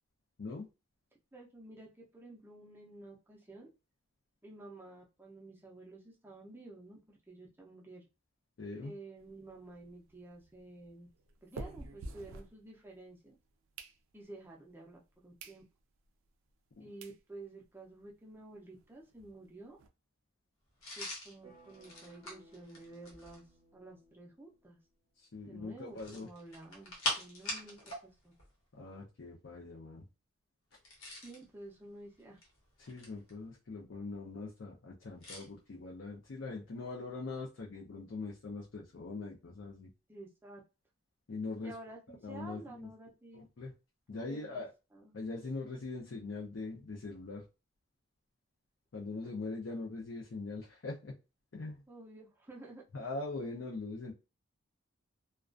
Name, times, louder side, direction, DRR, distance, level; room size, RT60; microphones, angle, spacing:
voice 1, 1.3-1.9 2.1-3.7 4.4-8.0 8.8-11.1 11.4-13.4 14.1-15.6 16.8-19.8 21.0-23.4 23.7-24.8 25.5-27.8 28.0-28.3 31.2-32.4 40.1-40.6 41.6-43.4 44.1-44.6 44.9-45.2 49.2-49.3 51.9-52.8, right 2 dB, 10° right, -2 dB, 0.5 m, -51 dB
voice 2, 8.6-8.9 16.8-16.9 25.2-26.3 28.7-30.0 32.8-39.9 41.3-41.7 42.2-42.9 43.3-43.7 44.1-44.7 45.1-47.4 48.9-51.1 51.5-51.8 52.9-54.1, left 3 dB, 60° left, -3 dB, 0.5 m, -42 dB
sound 1, 9.2-13.1 13.5-14.5 15.0-15.1 15.4-15.6 16.0-16.1 16.7-16.8 17.0-17.2 17.6-17.7 17.9-18.0 18.3-18.4 18.7-19.9, right 2 dB, 75° right, 0.3 m, -49 dB
sound 2, 20.8-23.5 25.9-28.0 28.3-28.5 30.7-31.4 32.2-33.3 35.2-35.5, left 1 dB, 85° left, 1.0 m, -41 dB
sound 3, 21.4-25.2, right 1 dB, 30° right, 0.9 m, -62 dB
2.3 x 2.2 x 2.4 m, 0.29 s
head